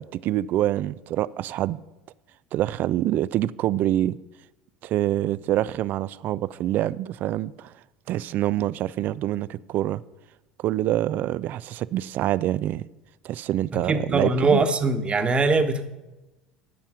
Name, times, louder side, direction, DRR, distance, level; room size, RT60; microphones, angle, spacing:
voice 1, 0.0-1.8 2.5-4.2 4.8-7.7 8.1-10.0 10.6-12.9 13.2-14.6, right 13 dB, 50° right, 0.4 m, -26 dB
voice 2, 13.7-15.9, right 3 dB, 25° right, 1.2 m, -22 dB
12.5 x 5.6 x 8.0 m
hypercardioid pair, 70°, 4 cm